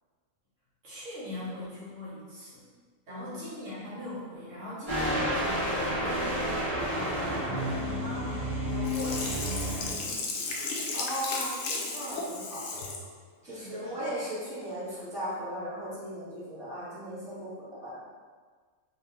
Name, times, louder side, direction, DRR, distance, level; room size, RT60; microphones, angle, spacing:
voice 1, 0.8-2.6 3.1-10.2 13.4-13.9, left 1 dB, 65° right, -9 dB, 1.3 m, -41 dB
voice 2, 3.1-3.4 9.8-10.3 10.9-12.8 13.4-18.0, equal, ahead, -13 dB, 1.2 m, -37 dB
sound 1, 4.9-9.9, equal, 25° right, 1.3 m, -30 dB
Sink (filling or washing), 8.8-13.0 13.5-13.6, left 3 dB, 65° left, 0.7 m, -34 dB
2.9 x 2.8 x 3.4 m, 1.5 s
omnidirectional pair, 1.5 m